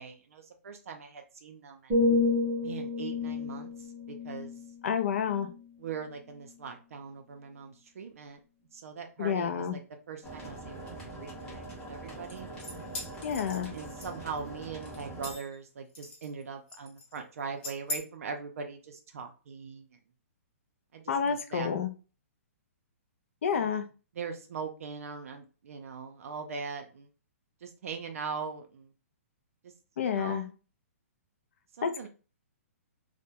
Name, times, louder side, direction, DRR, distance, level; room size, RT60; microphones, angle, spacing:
voice 1, 0.0-2.0 2.6-4.5 5.8-8.4 8.7-9.8 10.1-12.5 13.7-20.0 20.9-21.7 23.6-23.7 24.1-27.1 27.6-28.9 29.6-29.7 30.0-30.5 31.7-32.1, right 5 dB, 70° right, 5 dB, 0.4 m, -41 dB
sound 1, 1.9-5.8 6.3-6.6, left 3 dB, 25° right, 0.7 m, -30 dB
voice 2, 4.8-5.5 9.2-9.8 13.2-13.7 21.1-21.9 23.4-23.8 30.0-30.5 31.8-32.1, left 7 dB, 60° left, 9 dB, 0.4 m, -29 dB
sound 2, 10.2-15.3, right 2 dB, 10° left, 0.7 m, -43 dB
sound 3, 12.3-14.4 14.8-15.6 15.9-16.4 16.7-17.2 17.6-18.0, left 2 dB, 45° left, 0.9 m, -40 dB
2.2 x 2.1 x 2.7 m, 0.34 s
hypercardioid pair, 165°, 8 cm